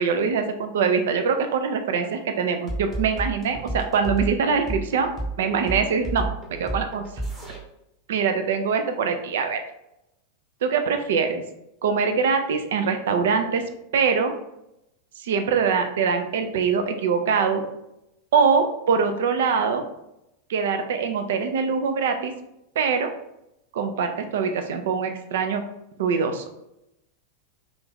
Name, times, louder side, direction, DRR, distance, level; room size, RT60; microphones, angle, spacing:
voice 1, 0.0-5.1 5.4-7.0 8.1-9.6 10.6-11.4 11.8-13.6 13.9-14.3 15.2-17.6 18.3-19.8 20.5-22.3 22.8-23.1 23.7-25.6 26.0-26.5, right 5 dB, 60° right, 7 dB, 0.4 m, -23 dB
sound 1, 2.7-7.6, right 2 dB, 15° right, 0.8 m, -30 dB
2.5 x 2.4 x 3.5 m, 0.86 s
figure-of-eight pair, 90°, 0 cm